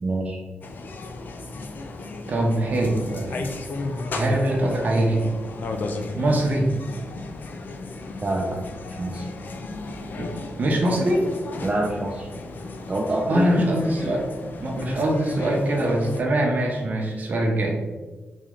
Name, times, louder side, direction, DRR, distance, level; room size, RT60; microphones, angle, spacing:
voice 1, 0.0-0.4 8.2-8.6 9.0-9.3 11.6-12.3 12.9-13.6, right 2 dB, 25° right, -1 dB, 0.4 m, -26 dB
sound 1, 0.6-16.2, left 3 dB, 55° left, 0.4 m, -35 dB
voice 2, 2.3-3.5 4.1-5.2 6.1-6.7 10.2-10.3 10.6-11.2 13.3-14.2 14.6-17.8, right 1 dB, 45° right, -1 dB, 0.9 m, -23 dB
4.0 x 3.1 x 3.7 m, 1.3 s
wide cardioid pair, 165°, 4 cm